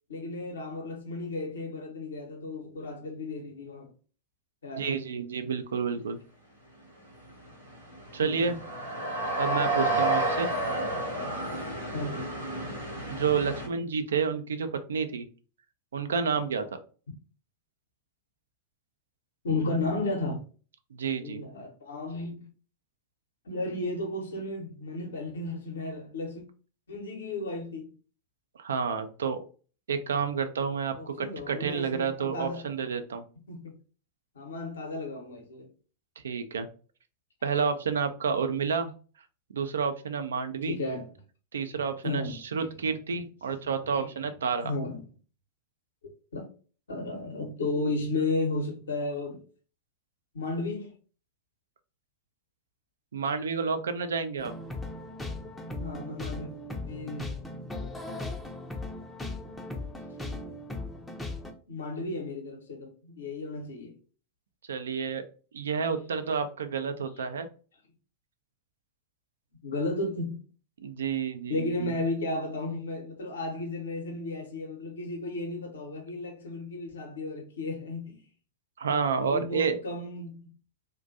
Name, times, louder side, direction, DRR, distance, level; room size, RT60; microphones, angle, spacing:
voice 1, 0.1-3.9 4.6-5.1 8.2-8.5 9.9-10.0 11.9-12.3 19.4-20.4 21.2-22.5 23.4-26.4 26.9-27.9 31.0-32.7 33.5-33.7 34.3-35.7 40.7-41.1 41.7-42.8 43.9-44.1 44.6-45.1 46.3-46.4 46.9-49.4 50.3-50.9 55.8-56.5 56.9-58.1 61.7-63.9 67.2-67.3 69.6-70.4 71.5-78.2 79.2-80.5, left 2 dB, 70° left, 0.7 m, -34 dB
voice 2, 4.8-6.2 8.1-8.6 9.4-10.5 13.1-15.3 15.9-16.8 20.9-21.4 28.6-29.4 29.9-33.2 36.2-36.7 37.4-38.9 39.5-40.8 41.5-44.7 53.1-54.5 64.7-65.2 65.5-67.5 70.8-71.9 78.8-79.8, right 6 dB, 65° right, 0.3 m, -30 dB
sound 1, 7.1-7.2 7.5-13.7, right 2 dB, 85° right, 0.7 m, -30 dB
sound 2, 54.4-61.5, left 2 dB, 10° left, 0.5 m, -38 dB
2.4 x 2.2 x 2.5 m
figure-of-eight pair, 90°, 0 cm